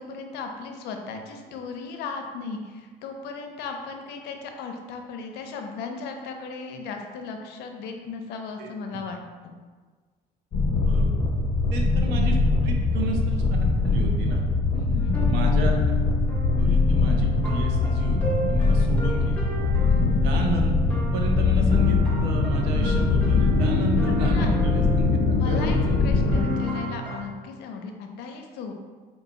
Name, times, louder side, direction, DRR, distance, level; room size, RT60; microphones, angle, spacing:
voice 1, 0.0-9.6 14.7-15.4 18.8-19.0 19.9-20.2 24.1-24.5 25.3-28.7, left 4 dB, 85° left, 4 dB, 0.5 m, -36 dB
sound 1, 10.5-26.4, left 3 dB, 45° left, 0.7 m, -22 dB
voice 2, 11.7-14.4 15.3-15.9 16.6-19.4 20.2-20.7 21.1-26.2, right 3 dB, 90° right, 1 dB, 0.6 m, -32 dB
sound 2, 15.0-27.2, left 2 dB, 10° left, 0.8 m, -33 dB
4.0 x 2.3 x 3.9 m, 1.4 s
cardioid pair, 110°, 17 cm